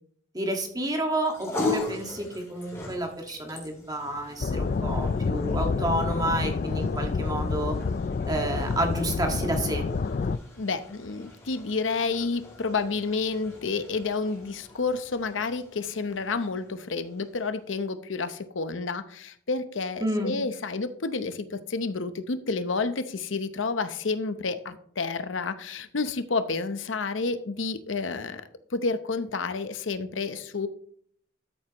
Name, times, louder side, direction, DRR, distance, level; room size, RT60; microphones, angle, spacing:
voice 1, 0.3-7.8 8.3-9.8 20.0-20.4, right 1 dB, 20° right, 3 dB, 1.6 m, -30 dB
sound 1, 1.1-17.6, left 3 dB, 15° left, 3.7 m, -40 dB
sound 2, 4.4-10.4, left 4 dB, 45° left, 0.4 m, -28 dB
voice 2, 10.6-28.4 28.7-30.7, left 4 dB, 80° left, 11 dB, 0.8 m, -30 dB
13.0 x 7.6 x 3.0 m, 0.62 s
head